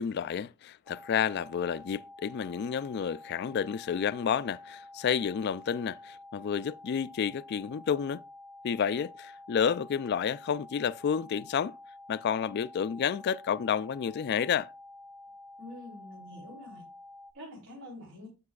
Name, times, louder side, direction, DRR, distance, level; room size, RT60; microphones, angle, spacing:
voice 1, 0.0-8.2 8.6-11.8 12.1-14.7, left 7 dB, 50° left, 0.3 m, -30 dB
sound 1, 0.9-17.3, left 2 dB, 15° right, 1.0 m, -50 dB
voice 2, 15.6-16.8 17.3-18.3, left 1 dB, 75° right, 3.2 m, -46 dB
9.6 x 8.3 x 2.3 m
head